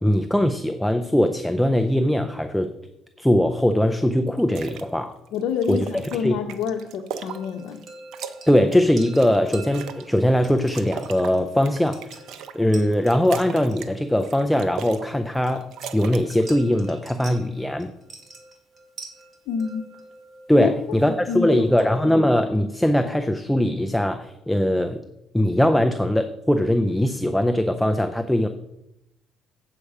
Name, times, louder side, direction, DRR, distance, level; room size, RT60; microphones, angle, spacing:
voice 1, 0.0-2.7 3.2-5.1 5.7-5.9 6.2-6.4 8.5-12.2 12.5-17.9 20.5-25.0 25.3-28.5, left 1 dB, 5° left, 7 dB, 0.5 m, -21 dB
sound 1, 4.4-4.9 5.3-7.8 8.1-10.1 10.4-12.6 12.9-13.9 14.2-15.1 15.3-16.5, right 7 dB, 70° right, 0.7 m, -38 dB
voice 2, 5.3-7.8 19.5-19.8 20.6-20.7 21.0-21.9 22.1-22.2, left 7 dB, 75° left, 3 dB, 0.7 m, -27 dB
sound 2, 7.3-22.1, right 3 dB, 30° right, 1.9 m, -46 dB
8.4 x 6.5 x 4.8 m, 0.85 s
cardioid pair, 120°, 0 cm